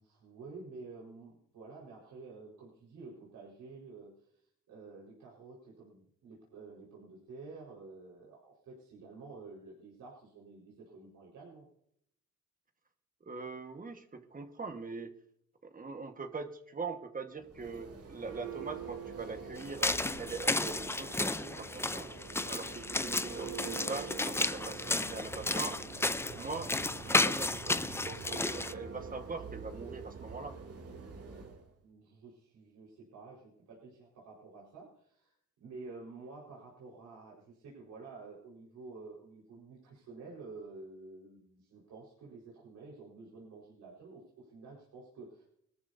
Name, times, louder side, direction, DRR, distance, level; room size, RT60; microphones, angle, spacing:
voice 1, 0.0-11.7 31.8-45.4, right 3 dB, 75° right, -5 dB, 4.8 m, -50 dB
voice 2, 13.2-15.2 15.6-22.1 22.5-24.8 25.1-25.8 26.3-30.6, right 4 dB, 30° right, 7 dB, 1.5 m, -42 dB
Church bell, 17.4-31.6, right 5 dB, 50° right, 2.7 m, -45 dB
sound 1, 19.6-28.7, left 2 dB, 10° left, 0.5 m, -33 dB
21.0 x 13.5 x 2.7 m, 0.71 s
cardioid pair, 90°, 30 cm